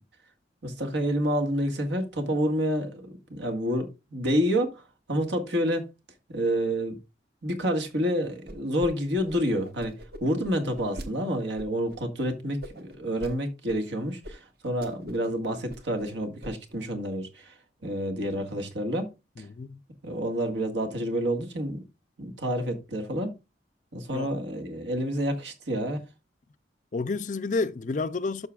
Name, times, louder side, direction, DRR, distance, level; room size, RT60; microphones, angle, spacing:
voice 1, 0.6-5.9 6.3-7.0 7.4-9.9 10.2-19.1 19.4-19.5 20.0-21.8 22.2-23.3 23.9-26.0, equal, 75° right, 1.8 m, -29 dB
sound 1, 8.5-8.9 9.1-11.1 11.6-12.0 12.6-13.3 13.7-13.8 14.2-14.3 14.6-15.3 15.5-16.1 16.4-16.8, equal, 55° right, 1.2 m, -42 dB
voice 2, 19.4-19.8 24.1-24.3 26.9-28.5, left 3 dB, 40° left, 0.4 m, -30 dB
11.5 x 6.5 x 2.4 m
head